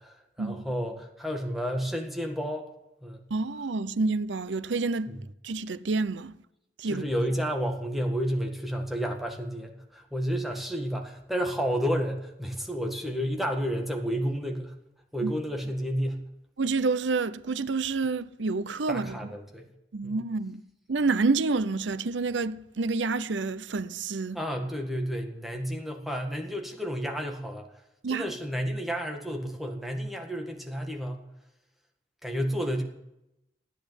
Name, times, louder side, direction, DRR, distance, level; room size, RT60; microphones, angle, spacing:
voice 1, 0.0-2.7 3.0-3.2 5.1-5.2 6.9-14.8 15.1-16.3 18.9-19.7 20.0-20.2 24.3-27.8 28.1-31.3 32.2-32.8, equal, ahead, 1.8 m, -31 dB
voice 2, 3.3-5.1 5.4-6.3 6.8-7.1 15.2-15.3 16.6-19.2 19.9-20.6 20.9-24.4 28.0-28.3, right 3 dB, 80° right, 0.7 m, -28 dB
15.0 x 10.0 x 8.1 m
head